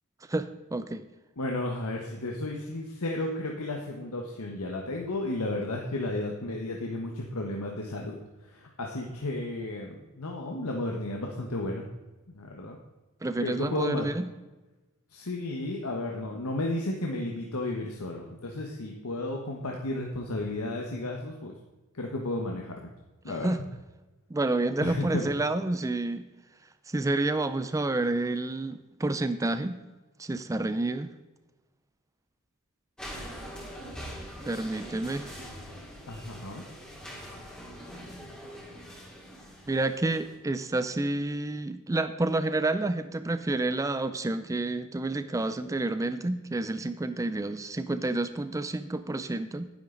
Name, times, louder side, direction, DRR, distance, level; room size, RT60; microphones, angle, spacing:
voice 1, 0.3-1.0 13.2-14.3 23.3-23.6 24.3-26.3 26.9-29.8 30.2-31.1 34.5-35.3 39.7-49.7, right 2 dB, 15° right, 11 dB, 0.4 m, -29 dB
voice 2, 1.4-8.2 8.4-11.8 12.3-12.8 13.4-14.1 15.1-21.5 21.9-22.9 23.2-23.5 24.8-25.3 36.1-36.6, left 2 dB, 85° left, 0 dB, 1.3 m, -33 dB
sound 1, 33.0-40.3, equal, 5° left, 2.5 m, -43 dB
11.5 x 10.5 x 3.9 m, 1.1 s
head